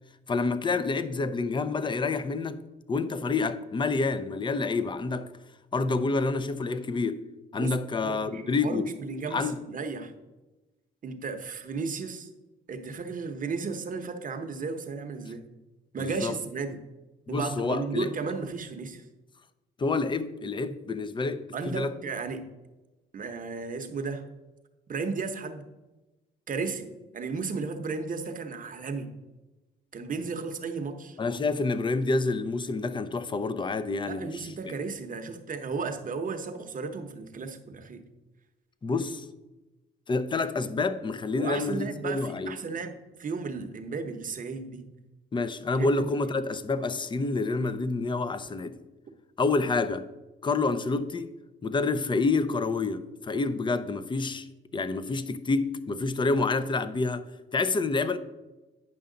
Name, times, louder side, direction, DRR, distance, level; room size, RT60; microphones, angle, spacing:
voice 1, 0.3-2.6 2.9-5.3 5.7-7.2 7.5-8.9 9.3-9.6 16.0-16.4 17.3-18.1 19.8-21.9 31.2-34.7 38.8-39.3 40.1-42.6 45.3-48.7 49.4-50.1 50.4-51.3 51.6-54.5 54.7-58.2, left 3 dB, 25° left, 0.5 m, -28 dB
voice 2, 8.0-10.1 11.0-12.3 12.7-15.5 15.9-16.8 17.3-19.0 21.5-22.5 23.1-24.3 24.9-25.7 26.5-26.9 27.1-29.1 29.9-31.2 34.1-38.0 41.4-44.9 45.8-46.1, right 4 dB, 45° right, 0.8 m, -34 dB
9.2 x 5.6 x 3.8 m
cardioid pair, 90°, 20 cm